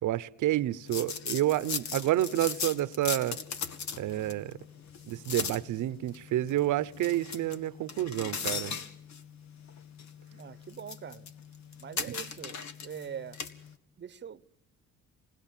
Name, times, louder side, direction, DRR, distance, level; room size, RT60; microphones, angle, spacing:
voice 1, 0.0-3.4 4.0-4.5 5.1-8.7 12.1-12.2, right 14 dB, 80° right, 0.9 m, -29 dB
sound 1, 0.9-13.7, left 6 dB, 65° left, 1.8 m, -39 dB
voice 2, 10.3-11.3 11.8-13.4 14.0-14.6, right 8 dB, 35° right, 0.9 m, -43 dB
27.5 x 20.0 x 7.4 m
cardioid pair, 90°, 30 cm